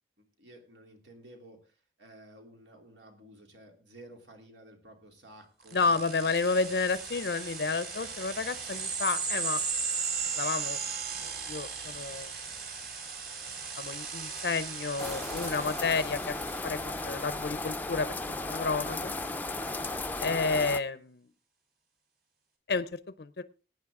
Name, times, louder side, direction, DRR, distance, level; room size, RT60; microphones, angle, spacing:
voice 1, 0.2-6.0 6.2-6.3, right 1 dB, 85° right, 3 dB, 3.1 m, -53 dB
voice 2, 5.7-9.6 10.4-10.8 11.2-12.3 13.8-16.3 16.6-18.1 18.4-19.1 20.2-21.2 22.7-23.4, left 4 dB, 65° left, 14 dB, 0.6 m, -31 dB
sound 1, 5.7-16.8, right 5 dB, 55° right, 3.9 m, -36 dB
sound 2, 15.0-20.8, left 2 dB, 10° left, 0.5 m, -35 dB
18.0 x 9.2 x 3.7 m, 0.35 s
head